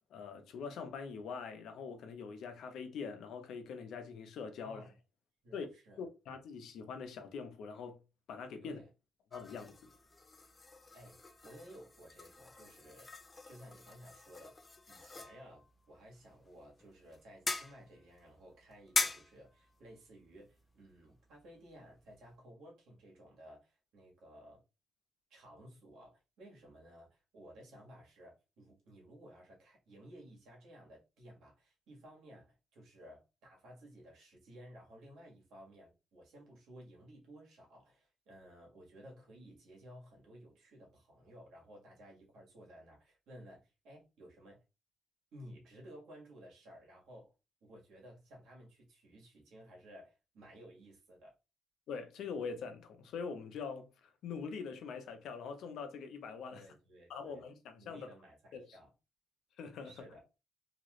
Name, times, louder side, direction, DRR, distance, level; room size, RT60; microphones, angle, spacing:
voice 1, 0.1-4.8 5.5-5.7 6.0-8.0 8.3-8.8 9.3-9.8 51.9-56.6 57.1-58.1 58.5-58.7 59.6-60.1, left 5 dB, 75° left, 0.6 m, -43 dB
voice 2, 4.6-5.0 5.4-6.0 8.6-8.9 10.9-13.1 13.4-14.6 14.9-24.6 25.3-44.6 45.3-47.3 47.6-51.3 56.5-57.4 57.8-58.9 59.8-60.2, equal, 80° right, 1.5 m, -56 dB
sound 1, 9.3-22.4, left 3 dB, 25° left, 0.4 m, -43 dB
3.0 x 2.4 x 3.0 m
cardioid pair, 90°, 0 cm